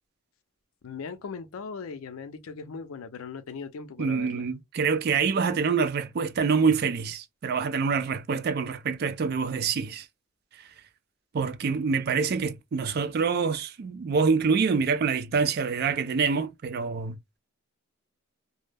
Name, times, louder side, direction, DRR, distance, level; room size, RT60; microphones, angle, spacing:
voice 1, 0.8-4.5, left 5 dB, 85° left, 0.5 m, -39 dB
voice 2, 4.0-10.1 10.6-10.7 11.3-17.4, right 5 dB, 50° right, 0.3 m, -26 dB
2.2 x 2.0 x 3.2 m
head